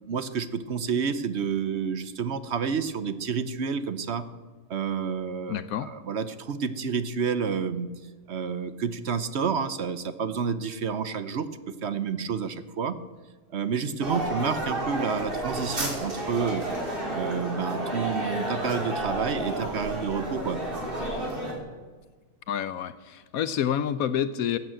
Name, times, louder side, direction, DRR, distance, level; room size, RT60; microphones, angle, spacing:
voice 1, 0.1-4.3 4.7-7.9 8.3-11.5 11.8-12.9 13.5-16.6 17.1-20.6, right 6 dB, 55° right, 13 dB, 0.9 m, -29 dB
voice 2, 5.5-5.9 22.5-24.6, left 9 dB, 75° left, 13 dB, 1.1 m, -28 dB
sound 1, 14.0-21.5, right 1 dB, 35° right, 3.3 m, -31 dB
14.5 x 9.1 x 7.6 m, 1.4 s
omnidirectional pair, 1.5 m